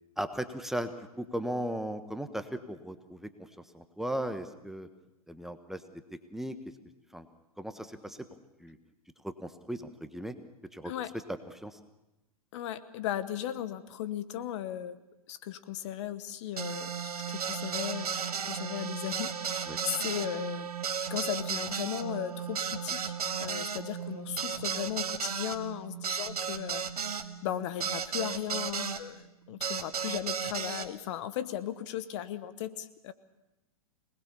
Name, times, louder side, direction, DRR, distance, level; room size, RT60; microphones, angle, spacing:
voice 1, 0.2-3.5 3.7-4.9 5.3-6.0 6.3-6.5 7.1-7.3 7.6-8.2 8.6-8.8 9.2-10.3 10.7-10.9 11.6-11.8 19.7-19.8, equal, ahead, 9 dB, 1.2 m, -37 dB
voice 2, 12.5-15.0 15.3-20.7 21.1-23.1 23.4-33.1, left 11 dB, 50° left, 13 dB, 1.2 m, -37 dB
sound 1, 16.6-29.0 29.6-30.9, right 6 dB, 80° right, 1.4 m, -35 dB
26.0 x 19.5 x 6.9 m, 0.95 s
hypercardioid pair, 110°, 19 cm